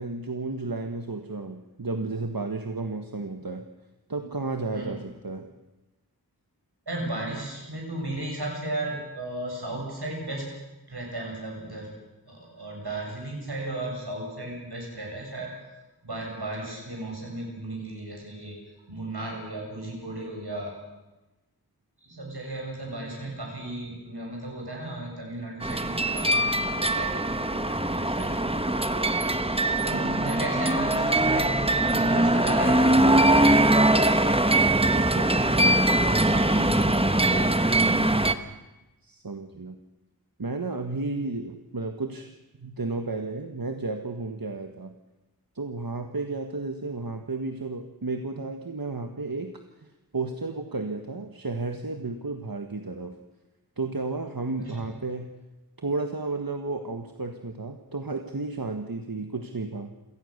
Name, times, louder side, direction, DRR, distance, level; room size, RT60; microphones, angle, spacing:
voice 1, 0.0-3.6 4.1-5.5 29.9-30.2 34.9-35.3 39.0-39.8 40.4-42.3 42.6-44.9 45.5-49.9 50.1-53.2 53.8-55.3 55.8-59.9, right 3 dB, 65° right, 5 dB, 1.6 m, -33 dB
voice 2, 6.9-10.5 10.9-11.9 12.3-15.5 16.0-18.6 18.9-20.7 22.0-33.7 35.3-38.1 54.6-54.9, right 1 dB, 85° right, -1 dB, 8.0 m, -35 dB
sound 1, 25.6-38.3, right 1 dB, 15° right, 1.3 m, -22 dB
27.5 x 18.0 x 6.7 m, 1.0 s
wide cardioid pair, 45°, 38 cm